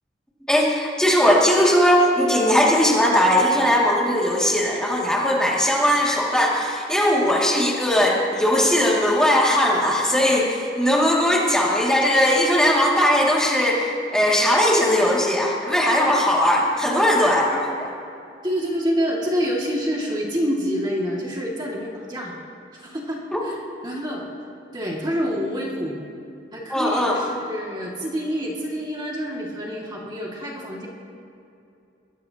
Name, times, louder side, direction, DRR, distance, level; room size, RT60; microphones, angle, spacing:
voice 1, 0.5-17.9 23.3-23.4 26.7-27.2, equal, 5° left, -4 dB, 2.3 m, -19 dB
voice 2, 18.4-22.3 22.7-24.2 24.7-26.0 26.5-30.9, equal, 25° right, -4 dB, 2.2 m, -27 dB
23.5 x 20.5 x 2.9 m, 2.6 s
head